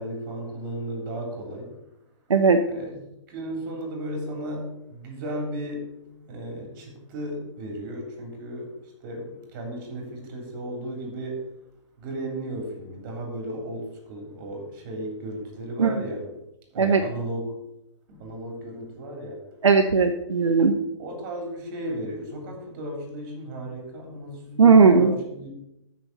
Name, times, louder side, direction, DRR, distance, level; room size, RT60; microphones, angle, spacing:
voice 1, 0.0-1.7 2.6-3.0 3.3-8.7 9.0-11.5 12.0-16.3 16.7-17.5 18.1-19.4 21.0-25.5, right 1 dB, 40° right, 2 dB, 3.4 m, -35 dB
voice 2, 19.6-20.7 24.6-25.1, right 5 dB, 75° right, 6 dB, 0.9 m, -17 dB
13.5 x 6.3 x 4.1 m, 0.86 s
figure-of-eight pair, 125°, 16 cm